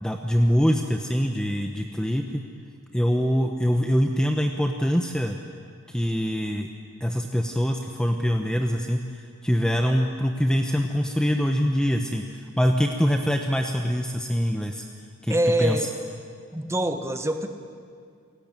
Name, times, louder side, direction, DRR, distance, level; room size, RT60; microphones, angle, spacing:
voice 1, 0.0-2.4 2.9-5.4 5.9-6.7 7.0-14.8 15.2-15.9, equal, 5° left, 4 dB, 0.9 m, -24 dB
voice 2, 15.3-15.9 16.5-17.5, right 1 dB, 10° right, 7 dB, 1.3 m, -24 dB
29.0 x 18.0 x 9.0 m, 2.2 s
head